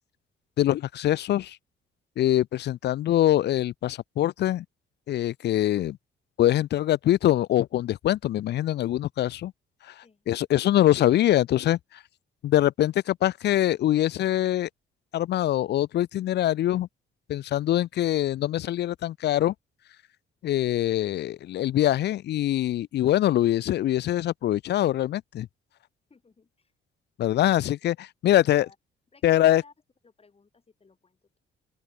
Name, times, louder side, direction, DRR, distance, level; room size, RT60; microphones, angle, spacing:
voice 1, 0.6-1.6 2.2-4.6 5.1-6.0 6.4-9.5 9.9-10.0 10.3-11.8 12.4-14.7 15.1-16.9 17.3-19.5 20.4-25.5 27.2-28.7 29.2-29.6, left 13 dB, 60° left, 0.4 m, -23 dB
voice 2, 26.1-26.7 28.4-28.8 29.1-29.7 30.0-31.4, left 4 dB, 30° left, 4.8 m, -58 dB
open air
cardioid pair, 90°, 20 cm